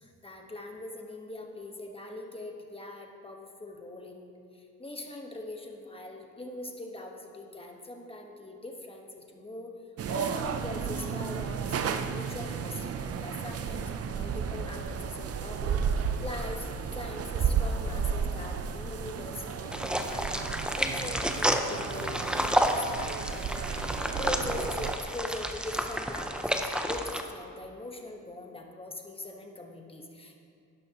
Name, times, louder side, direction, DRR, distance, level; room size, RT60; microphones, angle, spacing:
voice 1, 0.0-9.7 10.1-16.7 16.9-23.6 24.2-30.4, left 2 dB, 20° left, 2 dB, 1.3 m, -42 dB
sound 1, 10.0-25.0, right 6 dB, 50° right, 0.6 m, -33 dB
sound 2, 19.7-27.2, equal, 5° right, 0.6 m, -30 dB
11.0 x 11.0 x 3.0 m, 2.4 s
cardioid pair, 85°, 31 cm